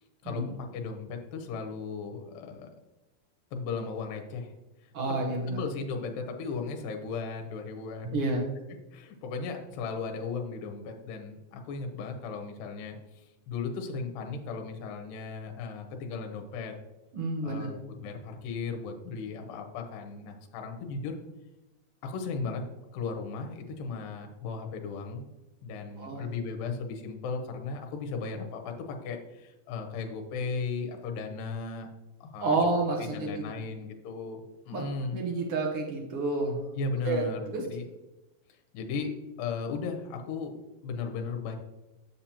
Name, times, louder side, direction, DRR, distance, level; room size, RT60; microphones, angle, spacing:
voice 1, 0.7-2.7 3.5-4.5 4.8-4.9 5.5-8.2 8.9-16.7 17.4-21.2 22.0-22.6 22.9-25.3 25.6-31.9 32.2-32.6 33.0-35.2 36.8-37.8 38.7-40.6 40.8-41.6, left 4 dB, 80° left, 4 dB, 2.5 m, -36 dB
voice 2, 4.9-5.6 8.1-8.5 17.1-17.7 26.0-26.2 32.4-33.4 34.7-34.8 35.1-36.6 37.0-37.6, right 3 dB, 75° right, -1 dB, 1.3 m, -29 dB
7.6 x 7.0 x 2.9 m, 1.0 s
omnidirectional pair, 4.0 m